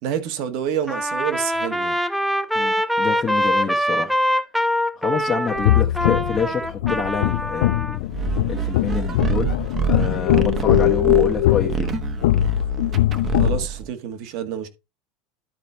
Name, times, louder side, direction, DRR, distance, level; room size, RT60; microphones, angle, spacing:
voice 1, 0.0-2.0 13.3-14.7, right 9 dB, 60° right, 1.7 m, -28 dB
Trumpet, 0.9-8.0, equal, ahead, 0.7 m, -23 dB
voice 2, 2.5-4.2 4.9-9.5 9.9-11.9, left 6 dB, 25° left, 1.2 m, -27 dB
sound 1, 5.5-13.6, left 15 dB, 85° left, 0.4 m, -21 dB
sound 2, 8.1-13.9, right 7 dB, 30° right, 1.1 m, -27 dB
12.0 x 4.1 x 4.5 m
supercardioid pair, 125°, 0 cm